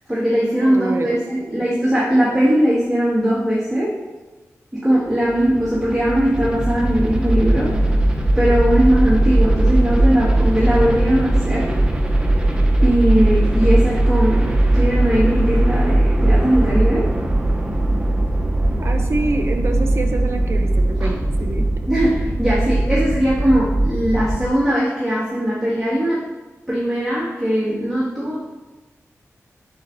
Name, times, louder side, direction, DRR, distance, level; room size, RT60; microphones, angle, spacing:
voice 1, 0.1-3.9 4.7-7.7 8.4-11.7 12.8-17.1 21.0-21.1 21.9-26.2 26.7-28.4, equal, ahead, -11 dB, 1.9 m, -19 dB
voice 2, 0.6-1.3 18.8-21.6, right 2 dB, 55° right, 4 dB, 0.9 m, -26 dB
sound 1, 5.1-24.5, right 1 dB, 15° right, 0.8 m, -19 dB
8.5 x 7.3 x 2.7 m, 1.2 s
wide cardioid pair, 115°, 5 cm